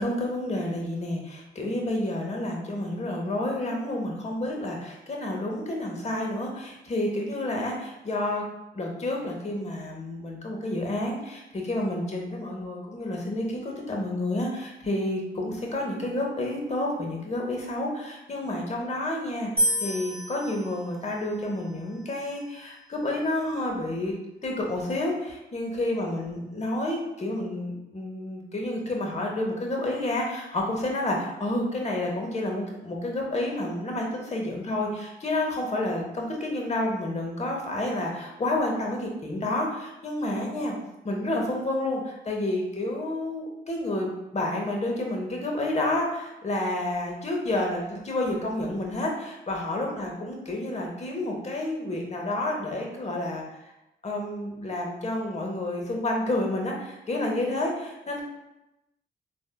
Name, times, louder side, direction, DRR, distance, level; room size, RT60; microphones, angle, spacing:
voice 1, 0.0-8.4 8.7-24.1 24.4-40.7 41.0-53.4 54.0-58.2, left 1 dB, 35° left, -1 dB, 0.8 m, -30 dB
sound 1, 19.6-22.8, equal, 55° right, 1.0 m, -31 dB
3.3 x 2.0 x 2.2 m, 0.92 s
supercardioid pair, 50°, 19 cm